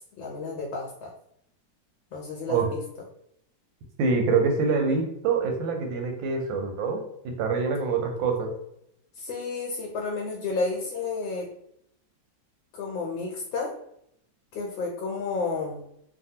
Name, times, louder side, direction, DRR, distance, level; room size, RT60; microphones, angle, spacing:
voice 1, 0.2-1.1 2.1-2.8 9.2-11.5 12.7-13.7 14.5-15.8, left 3 dB, 85° left, -1 dB, 1.3 m, -31 dB
voice 2, 4.0-7.0 7.4-8.5, right 4 dB, 85° right, 3 dB, 1.3 m, -25 dB
3.3 x 2.1 x 2.7 m, 0.76 s
omnidirectional pair, 2.1 m